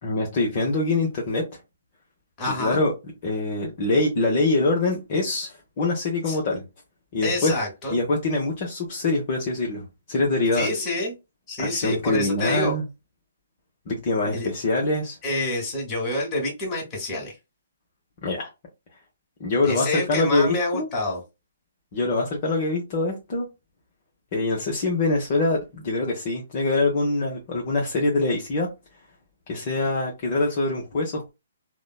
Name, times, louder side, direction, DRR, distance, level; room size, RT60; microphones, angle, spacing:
voice 1, 0.0-1.4 2.6-2.9 3.2-6.6 7.1-7.5 7.9-10.7 11.6-12.8 13.9-15.2 18.2-18.5 19.4-20.9 21.9-23.5 24.3-28.7 29.5-31.3, left 2 dB, 40° left, 0.8 m, -24 dB
voice 2, 2.4-2.8 6.3-6.4 7.2-7.9 10.5-11.1 11.5-12.8 14.2-14.5 15.2-17.3 19.6-21.2, left 1 dB, 20° left, 1.3 m, -27 dB
2.9 x 2.1 x 2.2 m
figure-of-eight pair, 130°, 0 cm